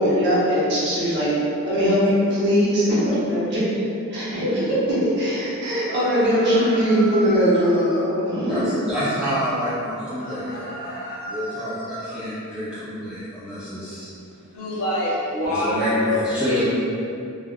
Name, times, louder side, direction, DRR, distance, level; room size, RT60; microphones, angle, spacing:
voice 1, 0.0-1.3 1.6-3.8 4.1-8.7, equal, 50° right, -9 dB, 0.9 m, -20 dB
sound 1, 5.8-8.1 10.2-12.2, equal, 40° left, 1.0 m, -35 dB
voice 2, 8.5-11.0 11.3-14.1 15.5-16.6, equal, 5° right, -12 dB, 0.4 m, -28 dB
voice 3, 14.5-16.6, left 1 dB, 70° left, -8 dB, 0.8 m, -24 dB
3.4 x 2.3 x 2.3 m, 2.6 s
head